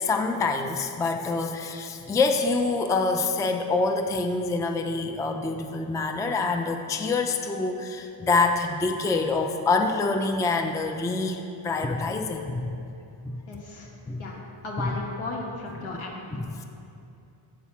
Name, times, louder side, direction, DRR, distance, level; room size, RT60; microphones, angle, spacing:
voice 1, 0.0-12.7 13.3-13.4 14.1-14.2 14.8-14.9 15.9-16.0 16.3-16.6, left 3 dB, 10° left, 5 dB, 0.3 m, -26 dB
voice 2, 13.5-13.9 14.2-14.4 14.6-16.2, left 2 dB, 75° left, -2 dB, 1.5 m, -35 dB
5.9 x 4.8 x 5.8 m, 2.7 s
supercardioid pair, 65°, 49 cm